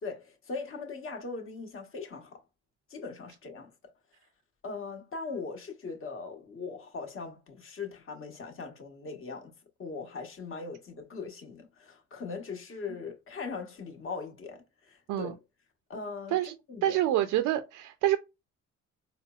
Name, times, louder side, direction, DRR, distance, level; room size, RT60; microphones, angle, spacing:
voice 1, 0.0-2.4 2.9-3.7 4.6-9.5 9.8-15.4 15.9-17.0, left 4 dB, 45° left, 1.1 m, -40 dB
voice 2, 16.8-18.2, right 13 dB, 80° right, 0.4 m, -27 dB
4.2 x 2.0 x 2.3 m
cardioid pair, 90°, 30 cm